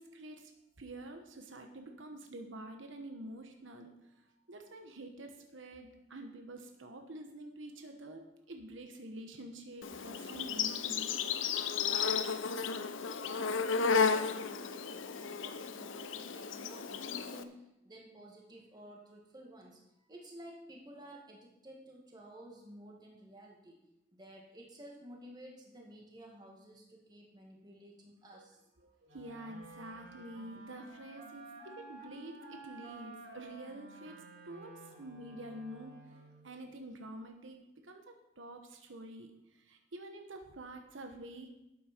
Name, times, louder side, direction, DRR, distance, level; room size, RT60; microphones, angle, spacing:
voice 1, 0.0-11.2 28.3-28.5 28.8-41.5, right 1 dB, 80° right, 4 dB, 1.2 m, -48 dB
Insect, 9.8-17.4, left 5 dB, 80° left, 0.7 m, -33 dB
voice 2, 13.1-19.8 20.1-23.8 24.1-28.6, right 1 dB, 20° right, -1 dB, 2.1 m, -53 dB
Wind instrument woodwind instrument, 29.0-36.5, right 2 dB, 55° right, 4.8 m, -52 dB
12.0 x 8.7 x 4.5 m, 0.88 s
head